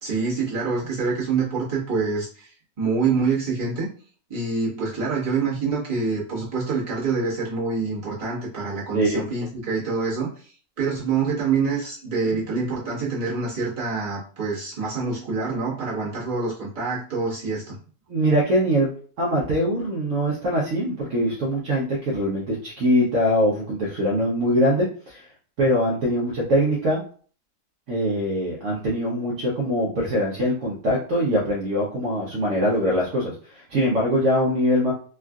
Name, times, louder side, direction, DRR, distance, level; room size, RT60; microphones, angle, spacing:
voice 1, 0.0-3.9 4.3-17.8, right 4 dB, 25° right, -7 dB, 1.1 m, -26 dB
voice 2, 8.9-9.3 18.1-25.2 25.6-27.0 27.9-34.9, equal, 60° right, -4 dB, 0.9 m, -23 dB
3.5 x 2.4 x 2.3 m, 0.43 s
omnidirectional pair, 1.6 m